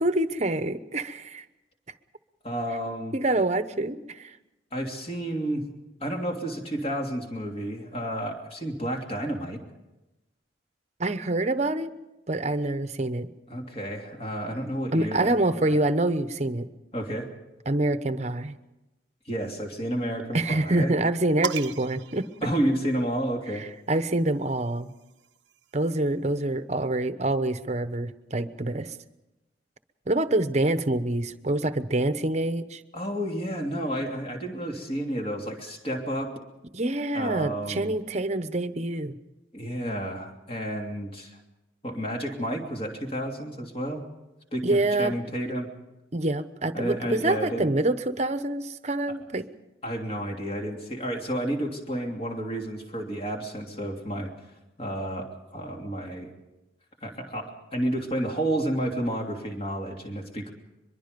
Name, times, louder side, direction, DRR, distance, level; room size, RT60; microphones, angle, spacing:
voice 1, 0.0-1.4 3.1-4.3 11.0-11.9 12.3-13.3 14.9-16.7 17.7-18.6 20.3-22.3 23.5-24.9 25.7-29.0 30.1-32.8 36.7-39.1 44.6-45.1 46.1-49.4, right 2 dB, 40° right, 11 dB, 0.9 m, -26 dB
voice 2, 2.4-3.2 4.7-5.6 6.0-9.6 13.5-15.3 15.7-15.8 16.9-17.3 19.3-20.9 22.4-23.6 32.9-36.3 37.1-37.9 39.5-41.4 41.8-44.0 44.5-45.7 46.7-47.7 49.8-54.3 54.8-56.3 57.0-60.5, right 1 dB, 30° left, 1 dB, 3.0 m, -31 dB
sound 1, 21.4-23.2 24.3-26.0, right 5 dB, 75° right, 0.8 m, -38 dB
23.5 x 22.5 x 5.3 m, 1.0 s
head